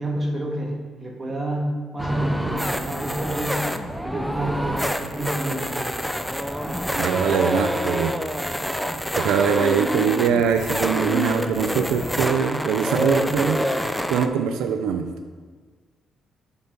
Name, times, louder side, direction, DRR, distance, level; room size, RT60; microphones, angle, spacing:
voice 1, 0.0-5.9, right 1 dB, 20° right, 0 dB, 1.5 m, -29 dB
sound 1, 2.0-14.3, equal, ahead, 0.5 m, -27 dB
voice 2, 6.7-8.2 9.1-13.6 14.1-15.1, right 7 dB, 90° right, 6 dB, 0.5 m, -22 dB
7.0 x 4.5 x 5.3 m, 1.5 s
cardioid pair, 90°, 0 cm